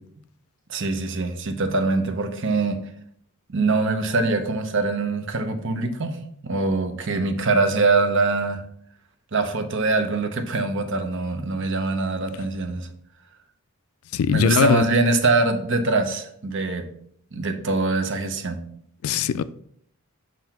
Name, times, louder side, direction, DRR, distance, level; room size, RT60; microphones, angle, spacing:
voice 1, 0.7-2.8 3.5-8.6 9.3-12.9 14.3-16.9 17.3-18.6, right 3 dB, 60° right, 0.8 m, -23 dB
voice 2, 14.1-14.8 19.0-19.4, left 8 dB, 80° left, 0.3 m, -20 dB
7.5 x 2.7 x 5.7 m
head